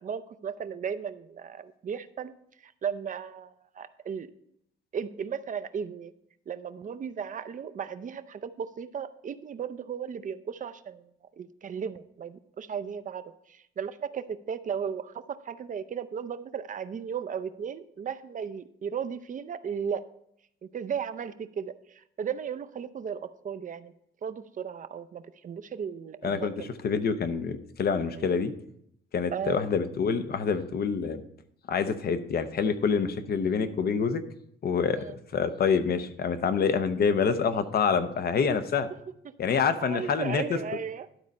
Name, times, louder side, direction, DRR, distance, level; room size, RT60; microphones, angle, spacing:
voice 1, 0.0-2.3 2.6-4.3 4.9-6.1 6.5-11.1 11.4-13.2 13.5-20.0 20.7-23.9 24.2-26.7 28.1-28.3 29.3-29.6 34.9-35.1 39.8-41.1, right 7 dB, 40° right, 11 dB, 0.5 m, -35 dB
voice 2, 26.2-28.5 29.1-31.2 31.7-34.2 34.6-35.1 35.3-38.9 39.4-40.6, left 6 dB, 50° left, 11 dB, 0.8 m, -26 dB
12.0 x 4.1 x 5.2 m, 0.74 s
cardioid pair, 90°, 20 cm